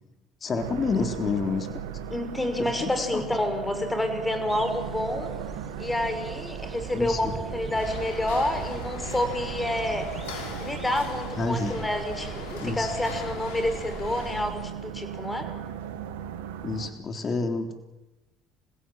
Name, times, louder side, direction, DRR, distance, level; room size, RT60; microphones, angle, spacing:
voice 1, 0.4-1.7 2.6-3.2 6.9-7.3 11.4-11.8 12.6-12.9 16.6-17.7, left 4 dB, 40° left, 6 dB, 3.6 m, -29 dB
sound 1, 0.6-16.9, right 9 dB, 85° right, 2.0 m, -38 dB
voice 2, 2.1-5.3 5.8-10.1 10.6-15.5, left 1 dB, 15° left, 7 dB, 5.8 m, -29 dB
sound 2, 4.5-14.7, right 4 dB, 35° right, 3.0 m, -42 dB
sound 3, 7.7-14.4, left 4 dB, 80° left, 4.7 m, -39 dB
29.0 x 16.0 x 8.0 m, 1.1 s
hypercardioid pair, 70°, 0 cm